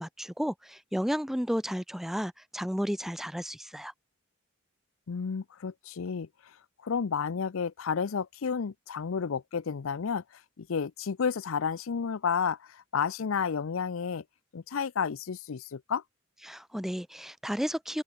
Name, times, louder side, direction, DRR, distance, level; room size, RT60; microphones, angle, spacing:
voice 1, 0.0-3.9 16.5-18.0, equal, ahead, 0.9 m, -32 dB
voice 2, 5.1-6.6 6.8-14.2 14.5-16.0, left 6 dB, 70° left, 0.5 m, -31 dB
open air
head